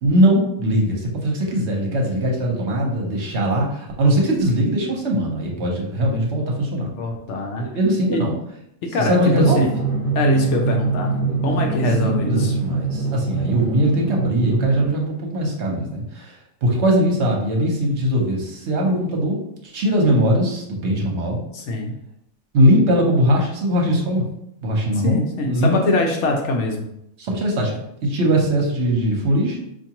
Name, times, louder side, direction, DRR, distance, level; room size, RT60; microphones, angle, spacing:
voice 1, 0.0-6.9 7.7-8.3 9.0-9.6 12.0-16.3 16.6-19.4 19.6-21.4 22.5-24.2 24.6-25.2 25.5-25.9 27.2-29.6, equal, 60° right, -1 dB, 1.0 m, -20 dB
voice 2, 7.0-7.7 8.1-8.2 8.9-9.7 10.1-11.1 11.4-12.5 21.5-21.9 25.0-26.9, left 2 dB, 70° left, 2 dB, 0.8 m, -23 dB
Drum, 9.3-14.9, right 4 dB, 45° left, 1.4 m, -23 dB
4.6 x 2.5 x 2.9 m, 0.78 s
omnidirectional pair, 1.4 m